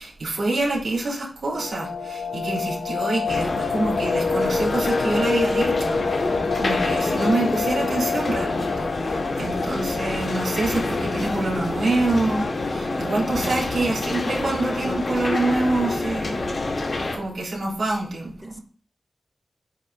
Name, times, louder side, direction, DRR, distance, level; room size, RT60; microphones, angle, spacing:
voice 1, 0.0-16.4 17.1-18.5, right 2 dB, 85° right, -3 dB, 3.4 m, -26 dB
sound 1, 1.5-12.3 12.6-12.7 13.1-13.2 13.7-14.1 14.6-14.7 14.9-15.4 15.7-15.8, left 4 dB, 90° left, 1.1 m, -28 dB
sound 2, 3.3-17.2, left 2 dB, 70° left, 2.3 m, -27 dB
voice 2, 9.6-9.9 18.4-18.6, equal, 10° left, 5 dB, 1.1 m, -39 dB
9.2 x 3.4 x 6.3 m, 0.42 s
wide cardioid pair, 85°, 0 cm